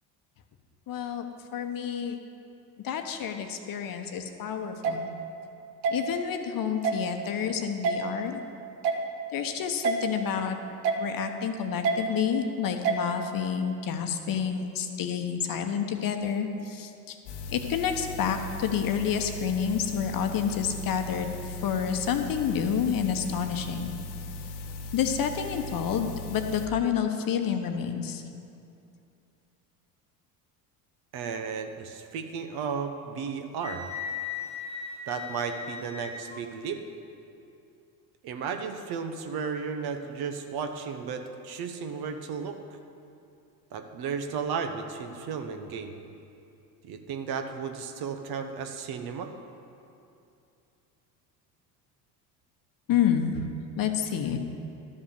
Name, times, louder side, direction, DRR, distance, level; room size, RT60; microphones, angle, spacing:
voice 1, 0.9-1.2 1.5-2.2 2.8-5.1 5.9-8.4 9.3-10.6 11.0-17.2 17.5-23.9 24.9-28.2 52.9-53.5 53.8-54.4, left 7 dB, 45° left, 6 dB, 1.0 m, -29 dB
sound 1, 4.8-5.0 5.8-6.0 6.8-7.0 7.8-8.0 8.8-9.0 9.8-10.0 10.8-11.0 11.8-12.0 12.8-13.0, right 5 dB, 85° right, 1.0 m, -25 dB
sound 2, 17.3-26.7, left 2 dB, 65° left, 1.1 m, -39 dB
voice 2, 31.1-33.9 35.1-36.8 38.2-42.6 43.7-46.0 46.8-49.3, right 6 dB, 50° right, 6 dB, 1.0 m, -34 dB
Wind instrument woodwind instrument, 33.6-36.4, left 6 dB, 15° left, 1.0 m, -37 dB
12.0 x 5.4 x 6.7 m, 2.6 s
hypercardioid pair, 70°, 48 cm